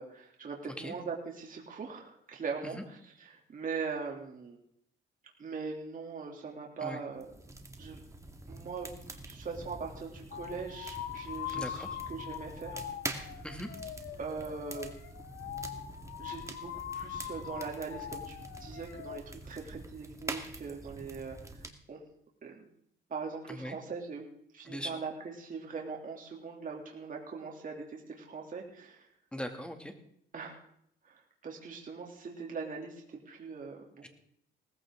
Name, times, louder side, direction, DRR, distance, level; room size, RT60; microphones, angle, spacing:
voice 1, 0.0-4.6 5.4-8.0 8.5-8.9 9.3-12.8 14.2-14.9 16.2-22.0 22.4-22.6 23.1-24.2 24.5-29.1 30.3-30.6 31.0-34.1, right 5 dB, 45° right, 0 dB, 2.9 m, -41 dB
sound 1, 7.2-21.7, right 2 dB, 15° right, 1.9 m, -45 dB
sound 2, 10.3-19.2, left 10 dB, 85° left, 1.3 m, -42 dB
voice 2, 11.5-11.9 13.4-13.7 23.5-23.8 24.6-25.0 29.3-29.9 34.0-34.1, equal, 5° left, 5 dB, 2.4 m, -40 dB
18.5 x 15.0 x 3.8 m, 0.69 s
cardioid pair, 90°, 20 cm